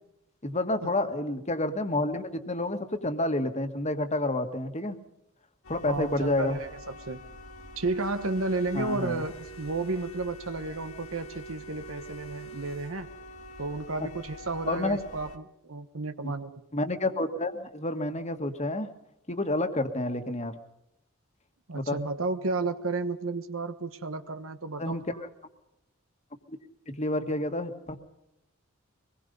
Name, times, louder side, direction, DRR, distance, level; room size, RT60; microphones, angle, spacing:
voice 1, 0.4-5.0 5.7-6.6 8.7-9.2 14.7-15.0 16.7-18.9 19.3-20.6 21.7-22.0 24.8-25.0 26.9-28.0, left 2 dB, 35° left, 7 dB, 1.9 m, -29 dB
sound 1, 5.6-15.4, right 1 dB, 85° left, 1.9 m, -45 dB
voice 2, 5.9-7.2 7.8-13.1 13.6-16.6 21.7-25.0, right 3 dB, 75° right, 8 dB, 1.3 m, -32 dB
25.0 x 20.5 x 5.4 m, 0.83 s
head